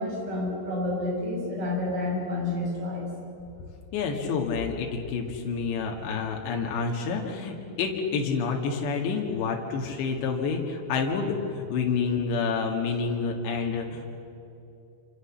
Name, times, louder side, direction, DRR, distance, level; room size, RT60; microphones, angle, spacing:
voice 1, 0.0-3.1, left 2 dB, 50° right, -2 dB, 8.3 m, -29 dB
voice 2, 3.9-14.1, left 5 dB, 80° left, 1 dB, 4.2 m, -28 dB
28.0 x 27.5 x 7.3 m, 2.8 s
omnidirectional pair, 5.0 m